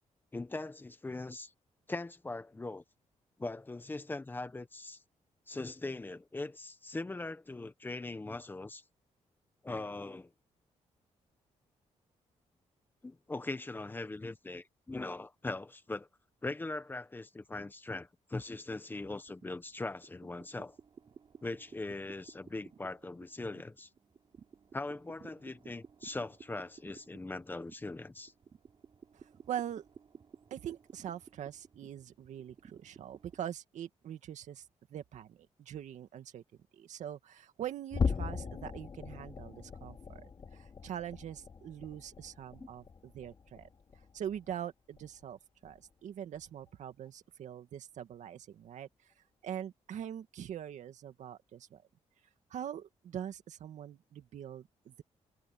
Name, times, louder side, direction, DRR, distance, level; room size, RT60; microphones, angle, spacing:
voice 1, 0.3-1.5 1.9-2.8 3.4-5.0 5.5-8.8 9.6-10.3 13.0-16.1 16.4-20.8 21.4-23.9 24.7-28.3, left 2 dB, 15° left, 1.2 m, -40 dB
sound 1, 18.9-33.5, right 6 dB, 40° right, 4.1 m, -56 dB
voice 2, 29.1-29.8 30.5-34.6 34.9-36.4 36.7-43.7 44.1-48.9 49.4-51.8 52.5-55.0, right 10 dB, 80° right, 2.2 m, -43 dB
sound 2, 37.9-44.6 44.9-45.2 45.6-45.8 46.3-46.5, left 5 dB, 35° left, 3.4 m, -39 dB
wide cardioid pair, 145°, 12 cm